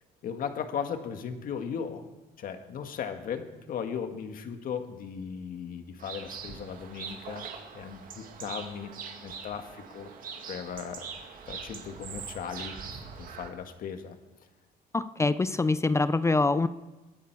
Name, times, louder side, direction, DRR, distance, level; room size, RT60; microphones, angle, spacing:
voice 1, 0.2-2.1 2.4-8.9 9.2-10.2 10.5-11.1 11.5-12.7 13.2-14.2, left 7 dB, 55° left, 6 dB, 1.8 m, -37 dB
sound 1, 6.0-13.5, right 6 dB, 55° right, 2.2 m, -42 dB
voice 2, 14.9-16.7, left 3 dB, 15° left, 14 dB, 0.5 m, -25 dB
21.5 x 12.0 x 4.8 m, 1.1 s
cardioid pair, 110°, 17 cm